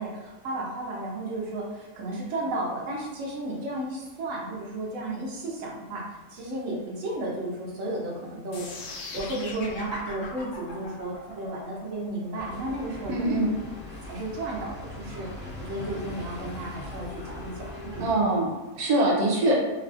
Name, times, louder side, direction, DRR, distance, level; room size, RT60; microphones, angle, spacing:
voice 1, 0.0-6.0 6.3-13.7 14.0-18.2, right 1 dB, 60° right, -4 dB, 1.1 m, -33 dB
sound 1, 8.5-14.6, left 3 dB, 60° left, 0.8 m, -41 dB
sound 2, 12.3-18.2, left 1 dB, 10° right, 0.5 m, -40 dB
voice 2, 13.1-13.5 18.0-19.5, right 1 dB, 85° right, -3 dB, 1.1 m, -23 dB
3.2 x 2.3 x 2.5 m, 1.2 s
omnidirectional pair, 1.6 m